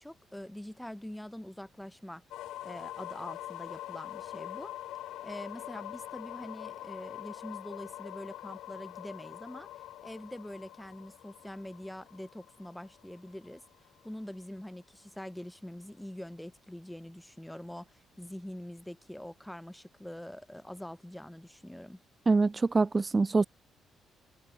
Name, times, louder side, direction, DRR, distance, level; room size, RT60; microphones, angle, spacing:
voice 1, 0.0-2.2 2.6-4.7 5.2-9.7 10.0-13.6 14.0-22.0, left 1 dB, 5° left, 7.8 m, -44 dB
sound 1, 2.3-14.1, left 14 dB, 85° left, 2.5 m, -44 dB
voice 2, 22.3-23.4, right 3 dB, 25° right, 0.5 m, -25 dB
cardioid pair, 90°, 0 cm